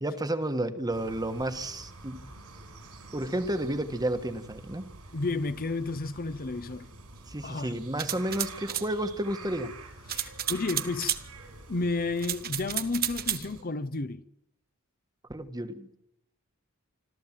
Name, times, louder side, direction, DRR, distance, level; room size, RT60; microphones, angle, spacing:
voice 1, 0.0-2.3 3.1-4.8 7.3-9.7 15.3-16.0, right 1 dB, 20° right, 1.3 m, -31 dB
sound 1, 0.9-13.6, right 3 dB, 85° right, 6.2 m, -47 dB
voice 2, 5.1-6.9 7.4-7.8 10.1-11.2 11.7-14.2, left 3 dB, 40° left, 0.8 m, -32 dB
sound 2, 8.0-8.9 10.1-11.2 12.2-13.5, right 11 dB, 45° right, 1.1 m, -32 dB
26.5 x 13.5 x 7.5 m
head